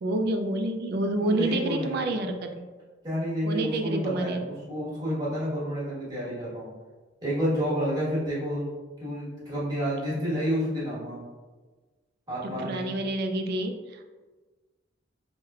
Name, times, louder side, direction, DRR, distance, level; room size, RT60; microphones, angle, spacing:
voice 1, 0.0-2.7 3.4-4.4 12.4-14.1, right 1 dB, 55° right, 5 dB, 0.3 m, -28 dB
voice 2, 1.2-2.1 3.0-6.7 7.2-8.7 9.0-11.2 12.3-12.9, equal, 20° right, -8 dB, 1.3 m, -30 dB
4.7 x 2.2 x 2.3 m, 1.3 s
head